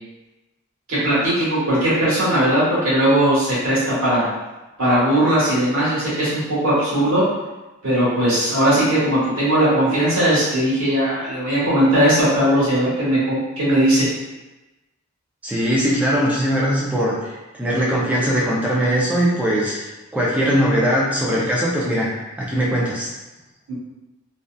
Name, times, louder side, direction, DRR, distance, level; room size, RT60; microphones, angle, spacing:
voice 1, 0.9-4.3 4.8-7.2 7.8-14.1 23.7-23.8, right 1 dB, 70° right, -9 dB, 1.2 m, -18 dB
voice 2, 15.4-17.2 17.6-19.8 20.1-22.1 22.4-23.1, equal, 5° right, -6 dB, 0.4 m, -20 dB
2.6 x 2.3 x 2.2 m, 1.1 s
head